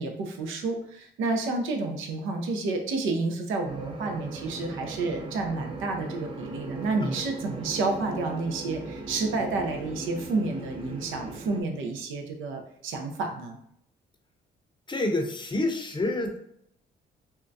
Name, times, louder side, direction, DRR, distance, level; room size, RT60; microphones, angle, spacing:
voice 1, 0.0-13.6, right 3 dB, 85° right, 3 dB, 0.6 m, -30 dB
sound 1, 3.6-11.6, right 2 dB, 25° right, 0.5 m, -38 dB
voice 2, 14.9-16.4, left 2 dB, 25° left, 3 dB, 0.6 m, -28 dB
3.6 x 2.2 x 2.6 m, 0.69 s
cardioid pair, 90°, 20 cm